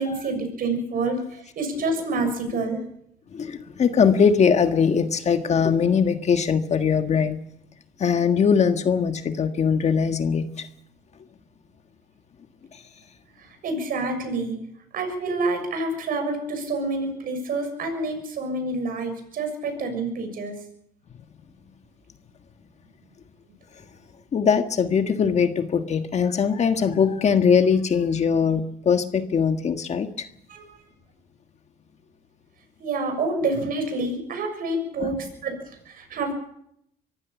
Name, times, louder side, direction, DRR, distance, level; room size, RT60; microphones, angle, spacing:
voice 1, 0.0-2.8 13.4-14.6 14.9-20.5 30.5-30.6 32.8-35.5 35.9-36.3, right 2 dB, 60° right, 6.9 m, -28 dB
voice 2, 3.3-7.4 8.0-10.7 12.7-12.8 24.3-30.3 35.0-35.2, left 6 dB, 40° left, 1.6 m, -21 dB
24.0 x 15.5 x 7.2 m
cardioid pair, 110°, 17 cm